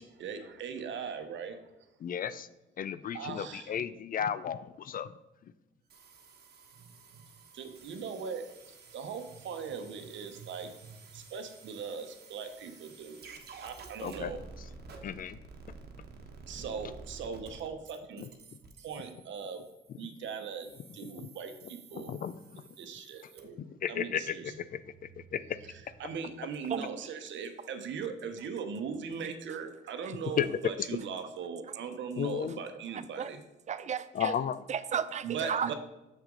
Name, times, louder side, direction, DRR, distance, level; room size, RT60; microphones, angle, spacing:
voice 1, 0.0-1.6 3.1-3.7 6.8-7.2 7.5-13.3 13.6-14.4 14.9-15.0 16.5-18.3 18.6-19.6 19.9-22.1 22.8-23.6 23.9-24.5 26.0-33.4 35.2-35.7, right 6 dB, 70° right, 7 dB, 0.9 m, -40 dB
voice 2, 2.0-2.5 2.8-5.1 14.0-14.3 15.0-15.4 18.2-18.3 21.0-21.3 21.9-22.6 23.2-23.3 23.6-25.6 30.4-30.9 32.2-32.6 34.1-34.6, left 8 dB, 45° left, 15 dB, 0.4 m, -34 dB
sound 1, 5.9-23.4, right 4 dB, 55° right, 1.1 m, -52 dB
voice 3, 33.7-34.3 34.7-35.7, right 7 dB, 35° right, 13 dB, 0.4 m, -33 dB
6.6 x 6.0 x 3.8 m, 0.98 s
cardioid pair, 90°, 20 cm